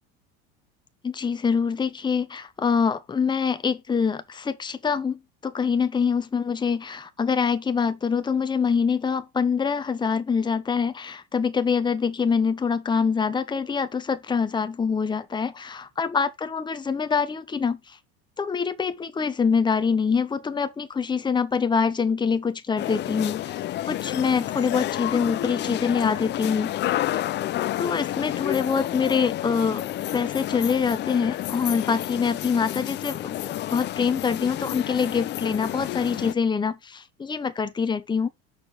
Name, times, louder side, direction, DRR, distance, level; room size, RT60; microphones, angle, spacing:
voice 1, 1.0-18.0 18.4-23.5 23.9-27.2 27.8-29.8 30.1-38.3, left 6 dB, 15° left, 0.8 m, -25 dB
sound 1, 22.8-36.3, left 14 dB, 35° left, 0.5 m, -30 dB
6.0 x 4.4 x 4.9 m
supercardioid pair, 110°, 31 cm